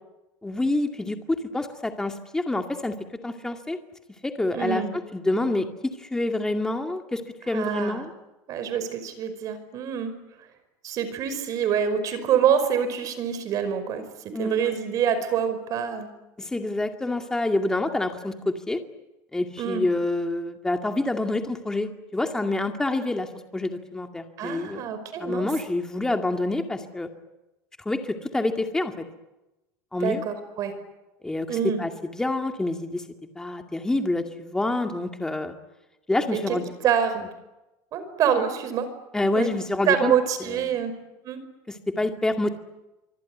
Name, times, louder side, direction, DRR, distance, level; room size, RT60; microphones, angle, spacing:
voice 1, 0.4-3.0 3.2-3.8 4.2-4.8 5.1-8.1 14.3-14.8 16.4-18.8 19.3-24.9 25.2-27.1 27.9-29.0 29.9-30.2 31.2-33.0 33.4-35.5 36.1-36.7 39.1-40.1 40.4-40.6 41.7-42.5, left 2 dB, 5° left, 5 dB, 2.2 m, -27 dB
voice 2, 4.5-4.9 7.5-8.1 8.5-10.1 10.8-14.0 14.4-16.1 19.6-19.8 24.4-25.5 30.0-30.7 31.5-31.8 36.3-36.6 36.8-37.2 37.9-38.9 39.3-39.5 39.9-40.9 41.2-41.4, right 8 dB, 45° right, 11 dB, 5.3 m, -26 dB
25.0 x 25.0 x 9.6 m, 0.99 s
cardioid pair, 155°, 9 cm